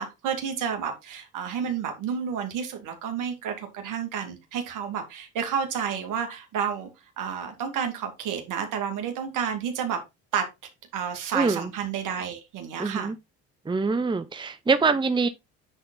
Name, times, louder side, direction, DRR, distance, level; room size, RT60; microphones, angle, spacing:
voice 1, 0.0-6.9 7.2-10.0 10.3-10.5 10.9-13.1, right 7 dB, 65° right, 2.6 m, -30 dB
voice 2, 11.3-11.7 12.8-13.1 13.7-15.3, right 4 dB, 15° right, 0.8 m, -24 dB
9.6 x 4.2 x 3.9 m
supercardioid pair, 70°, 33 cm